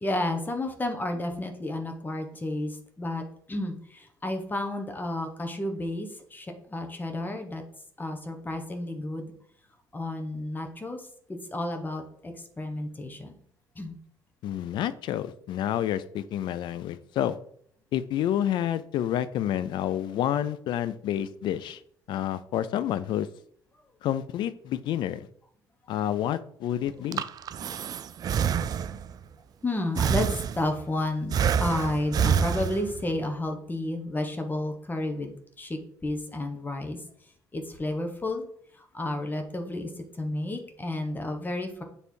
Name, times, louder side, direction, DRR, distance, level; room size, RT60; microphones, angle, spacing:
voice 1, 0.0-7.6 8.0-9.3 9.9-13.3 13.7-14.0 26.9-27.0 29.6-37.0 37.5-38.5 38.7-41.8, left 1 dB, 20° left, 5 dB, 1.2 m, -32 dB
voice 2, 14.4-17.3 17.9-21.8 22.1-23.3 24.0-25.3 25.9-27.2, left 11 dB, 70° left, 15 dB, 0.5 m, -29 dB
Breathing, 26.9-29.2 30.0-30.9 31.3-33.1, right 7 dB, 50° right, 0.4 m, -27 dB
6.9 x 3.4 x 4.6 m, 0.64 s
supercardioid pair, 80°, 8 cm